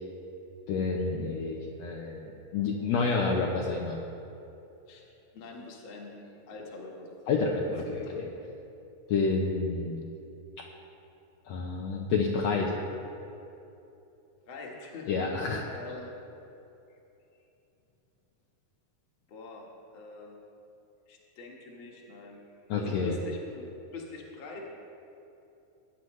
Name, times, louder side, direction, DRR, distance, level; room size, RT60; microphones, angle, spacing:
voice 1, 0.7-2.3 2.5-4.0 7.3-8.3 9.1-10.1 11.5-12.7 15.1-15.6 22.7-23.1, left 4 dB, 80° left, -1 dB, 1.5 m, -29 dB
voice 2, 5.3-7.5 7.8-8.1 14.5-15.1 15.7-16.2 16.9-17.0 19.3-19.7 19.9-20.3 21.1-22.4 22.7-24.7, left 3 dB, 50° left, -1 dB, 1.6 m, -44 dB
19.0 x 9.4 x 3.2 m, 2.9 s
omnidirectional pair, 4.1 m